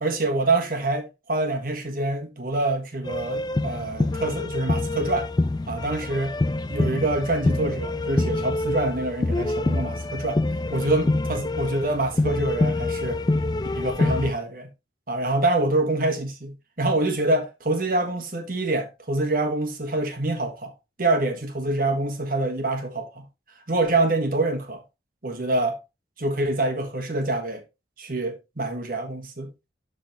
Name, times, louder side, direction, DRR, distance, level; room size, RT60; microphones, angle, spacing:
voice 1, 0.0-5.3 5.7-6.3 6.7-10.4 10.7-13.2 13.7-14.7 15.1-20.7 21.0-23.3 23.7-24.8 25.2-25.8 26.2-27.6 28.0-29.5, right 2 dB, 50° right, 1.5 m, -26 dB
sound 1, 3.0-14.3, left 2 dB, 20° left, 0.3 m, -26 dB
12.0 x 4.0 x 3.0 m
head